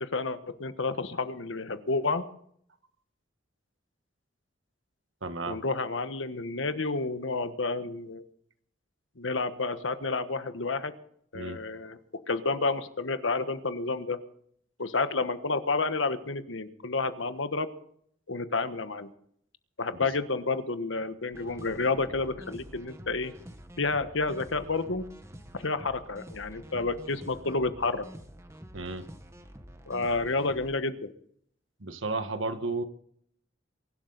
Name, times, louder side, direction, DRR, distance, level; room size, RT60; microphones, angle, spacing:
voice 1, 0.0-2.3 5.5-8.2 9.2-10.9 11.3-12.0 12.3-14.2 14.8-17.7 18.3-19.1 19.8-23.3 23.8-25.0 25.5-28.0 29.9-31.1, left 3 dB, 80° left, 10 dB, 1.3 m, -30 dB
voice 2, 5.2-5.6 11.3-11.6 28.7-29.1 31.8-32.8, right 3 dB, 85° right, 9 dB, 1.5 m, -33 dB
sound 1, 21.3-30.8, equal, 15° right, 1.4 m, -48 dB
23.0 x 12.0 x 4.0 m, 0.65 s
head